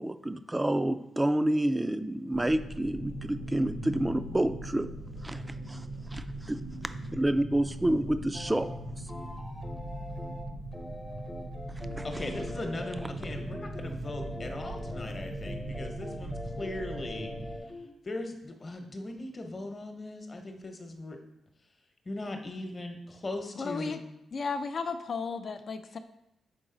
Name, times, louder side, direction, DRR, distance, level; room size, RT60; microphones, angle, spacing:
voice 1, 0.0-4.9 5.2-5.8 6.1-6.6 7.1-8.6 12.0-12.1, right 1 dB, 15° right, 10 dB, 0.4 m, -29 dB
sound 1, 2.3-17.6, right 1 dB, 75° right, 1.0 m, -40 dB
sound 2, 8.3-8.8 9.1-17.9, left 1 dB, 15° left, 0.7 m, -43 dB
voice 2, 12.0-17.3 18.0-21.2 22.0-24.0, left 2 dB, 40° left, 5 dB, 1.0 m, -39 dB
voice 3, 23.6-24.0 24.3-26.0, left 4 dB, 55° left, 8 dB, 0.6 m, -34 dB
6.1 x 3.9 x 3.9 m, 0.85 s
supercardioid pair, 55°, 0 cm